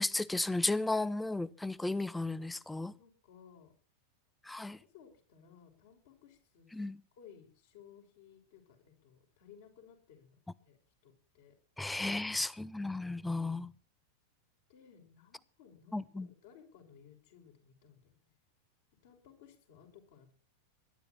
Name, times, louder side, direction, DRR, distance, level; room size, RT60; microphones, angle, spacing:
voice 1, 0.0-2.9 4.5-4.8 6.7-7.0 11.8-13.7 15.9-16.3, left 2 dB, 5° left, 0.6 m, -34 dB
voice 2, 2.9-3.7 4.9-6.9 7.1-10.8 11.0-11.6 14.7-18.1 19.0-20.3, left 8 dB, 55° left, 5.9 m, -59 dB
22.0 x 11.5 x 4.4 m
figure-of-eight pair, 90°, 0 cm